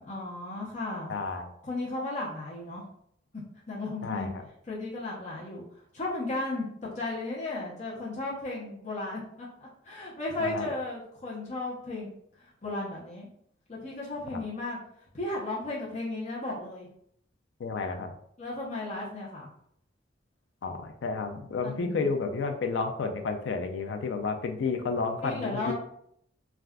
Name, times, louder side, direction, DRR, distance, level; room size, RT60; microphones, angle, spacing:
voice 1, 0.0-1.1 1.6-2.8 3.7-4.3 4.7-12.1 12.4-13.3 13.7-14.8 15.1-16.9 18.4-19.5 21.6-22.1 25.2-25.7, left 2 dB, 40° left, -5 dB, 0.7 m, -35 dB
voice 2, 1.1-1.5 4.0-4.4 10.4-10.7 14.3-14.4 17.6-18.1 20.6-25.7, left 4 dB, 70° left, 6 dB, 0.4 m, -31 dB
3.5 x 2.4 x 2.2 m, 0.69 s
head